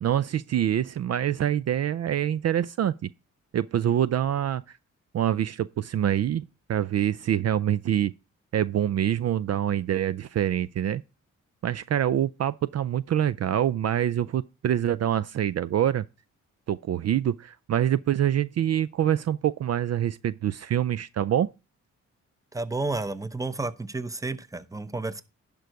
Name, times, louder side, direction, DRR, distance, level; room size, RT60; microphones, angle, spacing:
voice 1, 0.0-2.9 3.5-4.8 5.1-8.1 8.5-11.0 11.6-16.0 16.7-21.5, right 10 dB, 55° right, 0.4 m, -25 dB
voice 2, 22.5-25.2, right 3 dB, 10° right, 0.8 m, -31 dB
11.0 x 5.3 x 4.6 m
cardioid pair, 65°, 31 cm